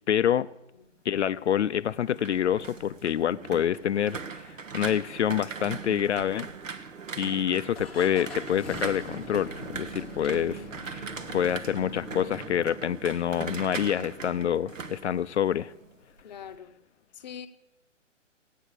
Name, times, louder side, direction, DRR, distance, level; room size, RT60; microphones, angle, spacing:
voice 1, 0.1-0.5 1.1-6.5 7.2-11.1 11.3-15.7, left 9 dB, 65° left, 0.5 m, -27 dB
sound 1, 1.9-15.9 16.2-16.6, right 5 dB, 85° right, 1.2 m, -40 dB
sound 2, 6.4-7.1 7.7-12.7, left 2 dB, ahead, 0.6 m, -43 dB
voice 2, 16.2-16.8 17.1-17.5, left 8 dB, 35° left, 0.8 m, -43 dB
16.5 x 9.1 x 6.4 m
hypercardioid pair, 150°, 38 cm